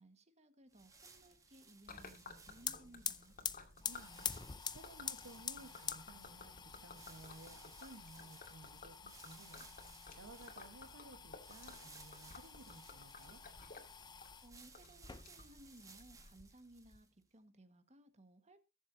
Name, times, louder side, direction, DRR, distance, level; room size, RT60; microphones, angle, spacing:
voice 1, 0.0-3.3 14.4-18.6, right 1 dB, 30° right, 1.6 m, -61 dB
sound 1, 0.7-17.2, right 4 dB, 15° right, 1.6 m, -62 dB
Gurgling / Liquid, 1.9-16.4, left 3 dB, 40° left, 2.3 m, -56 dB
sound 2, 2.6-14.5 15.0-15.7 16.0-17.0, left 7 dB, 20° left, 0.5 m, -47 dB
voice 2, 3.8-6.5 6.8-9.8 10.2-13.4, right 2 dB, 80° right, 1.3 m, -57 dB
22.0 x 7.3 x 2.7 m
head